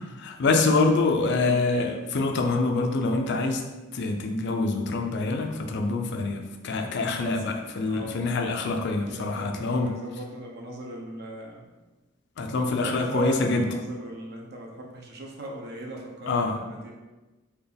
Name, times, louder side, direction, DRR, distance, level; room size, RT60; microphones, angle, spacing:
voice 1, 0.3-3.6 3.9-9.9 12.4-13.6 16.3-16.6, left 3 dB, 55° left, 4 dB, 0.4 m, -25 dB
voice 2, 1.4-1.7 7.1-7.4 7.9-8.2 9.0-11.7 12.4-16.9, right 1 dB, 50° right, 0 dB, 0.6 m, -39 dB
4.2 x 2.3 x 3.4 m, 1.2 s
head